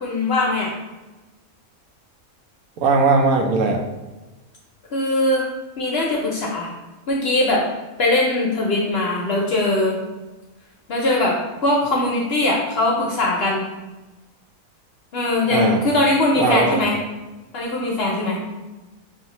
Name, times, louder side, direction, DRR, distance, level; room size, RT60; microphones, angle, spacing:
voice 1, 0.0-0.7 4.9-5.5 5.8-6.7 7.1-7.6 8.0-10.0 10.9-11.4 11.6-13.6 15.1-17.0 17.5-18.4, left 2 dB, 55° left, -2 dB, 0.7 m, -20 dB
voice 2, 2.8-3.8 15.5-15.8 16.4-16.8, right 3 dB, 75° right, 2 dB, 1.0 m, -18 dB
5.0 x 2.6 x 2.9 m, 1.1 s
omnidirectional pair, 1.5 m